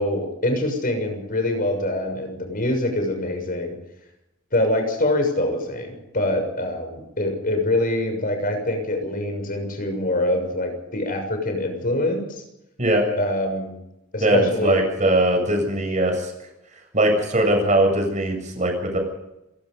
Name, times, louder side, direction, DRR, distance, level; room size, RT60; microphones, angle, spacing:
voice 1, 0.0-3.8 4.5-12.4 13.2-13.7 14.1-14.8, left 1 dB, 40° left, 5 dB, 6.6 m, -24 dB
voice 2, 14.2-16.3 16.9-19.0, right 1 dB, 35° right, 3 dB, 7.3 m, -20 dB
28.0 x 18.0 x 5.4 m, 0.90 s
head